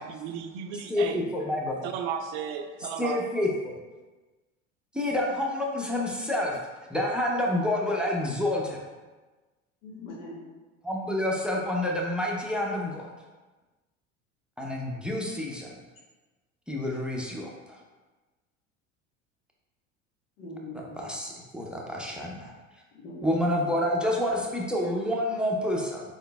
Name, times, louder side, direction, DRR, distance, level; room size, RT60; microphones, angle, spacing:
voice 1, 0.0-1.2 1.8-3.2, right 7 dB, 60° right, 7 dB, 0.5 m, -34 dB
voice 2, 0.9-1.7 3.0-3.8 4.9-6.6 6.9-8.8 10.8-13.1 14.6-15.7 16.7-17.8 20.7-22.5 23.2-26.0, left 1 dB, ahead, -2 dB, 0.6 m, -28 dB
voice 3, 9.8-10.5 20.4-21.0 22.9-23.7, left 1 dB, 70° left, -2 dB, 1.2 m, -42 dB
4.4 x 3.7 x 2.3 m, 1.2 s
hypercardioid pair, 75°, 40 cm